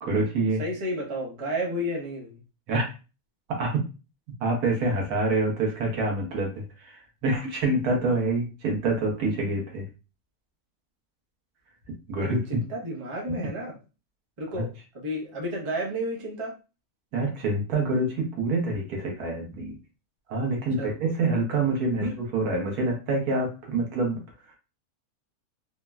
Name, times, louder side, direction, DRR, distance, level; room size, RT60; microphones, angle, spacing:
voice 1, 0.0-0.6 2.7-2.8 3.5-3.8 4.4-9.9 11.9-12.6 13.3-13.4 14.5-14.6 17.1-19.8 20.3-22.0 22.3-24.2, right 2 dB, 85° right, 0 dB, 1.4 m, -26 dB
voice 2, 0.6-2.4 12.2-13.7 14.4-14.7 14.9-16.5 20.8-21.1 22.0-22.1, equal, 30° right, -2 dB, 0.6 m, -31 dB
3.6 x 2.0 x 2.3 m, 0.32 s
omnidirectional pair, 1.6 m